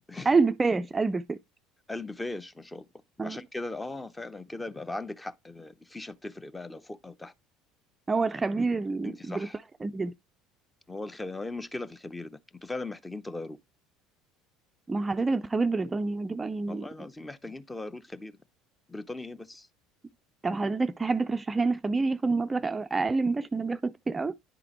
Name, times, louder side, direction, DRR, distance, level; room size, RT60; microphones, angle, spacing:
voice 1, 0.3-1.4 3.2-3.4 8.1-9.5 9.8-10.1 14.9-16.9 20.4-24.3, right 3 dB, 20° right, 0.4 m, -27 dB
voice 2, 1.9-2.9 3.2-7.3 9.0-9.6 10.9-13.6 16.7-18.3 18.9-19.7, left 2 dB, 15° left, 0.7 m, -38 dB
10.0 x 3.8 x 3.0 m
hypercardioid pair, 65°, 0 cm